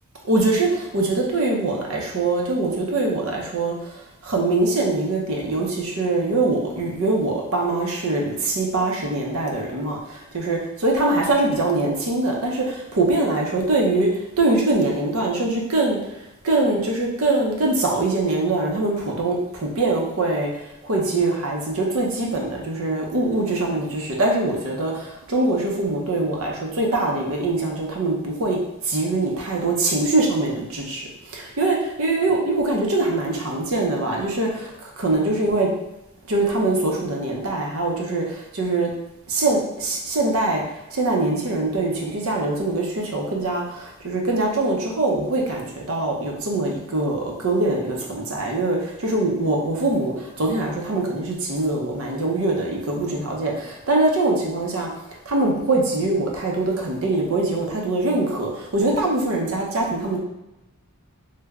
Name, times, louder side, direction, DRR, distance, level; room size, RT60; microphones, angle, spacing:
voice 1, 0.2-3.7 4.2-14.1 14.4-16.0 16.4-20.5 20.8-28.6 28.8-35.7 36.3-38.9 39.3-40.6 40.9-54.9 55.3-60.2, right 2 dB, 70° right, -1 dB, 0.7 m, -23 dB
3.2 x 2.2 x 3.6 m, 0.94 s
head